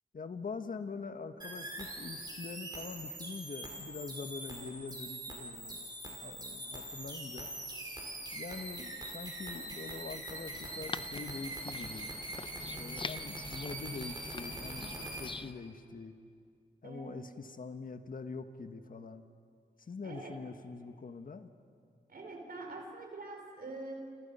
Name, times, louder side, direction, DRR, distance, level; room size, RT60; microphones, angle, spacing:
voice 1, 0.1-7.5 8.3-12.1 12.7-16.1 16.8-19.2 19.8-21.5, left 4 dB, 50° left, 8 dB, 1.6 m, -44 dB
sound 1, 1.4-15.3, right 1 dB, 25° right, 5.1 m, -43 dB
sound 2, 10.5-15.5, left 4 dB, 30° left, 0.6 m, -45 dB
voice 2, 16.8-17.2 20.0-20.3 22.1-23.9, right 2 dB, 60° right, 2 dB, 5.0 m, -44 dB
29.5 x 26.5 x 5.7 m, 2.3 s
cardioid pair, 80°, 18 cm